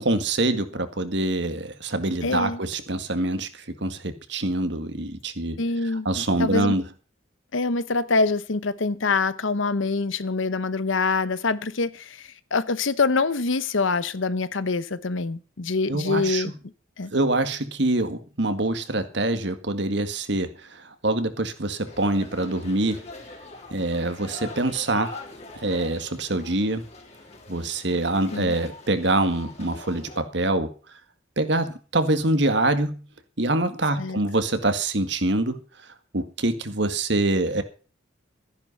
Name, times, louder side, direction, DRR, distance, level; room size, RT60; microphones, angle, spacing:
voice 1, 0.0-5.6 6.1-6.8 15.9-16.4 17.1-23.0 23.7-25.1 25.6-26.8 27.5-30.7 31.4-33.0 33.4-35.6 36.1-37.6, right 2 dB, 60° right, 2.0 m, -25 dB
voice 2, 2.2-2.6 5.6-6.1 6.4-6.8 7.5-16.5 17.0-17.1 28.3-28.5 34.0-34.2, left 3 dB, 75° left, 0.9 m, -25 dB
sound 1, 21.8-30.2, left 2 dB, 35° left, 3.1 m, -43 dB
14.5 x 10.5 x 5.6 m
head